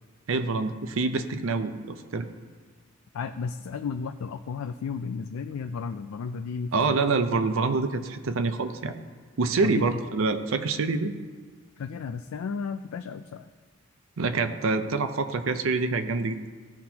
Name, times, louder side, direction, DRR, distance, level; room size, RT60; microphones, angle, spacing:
voice 1, 0.3-2.3 6.7-9.0 9.4-11.1 14.2-16.4, right 3 dB, 70° right, 8 dB, 0.6 m, -26 dB
voice 2, 3.1-7.0 9.6-10.0 11.8-13.5, left 5 dB, 85° left, 8 dB, 0.4 m, -33 dB
15.5 x 5.9 x 2.9 m, 1.5 s
head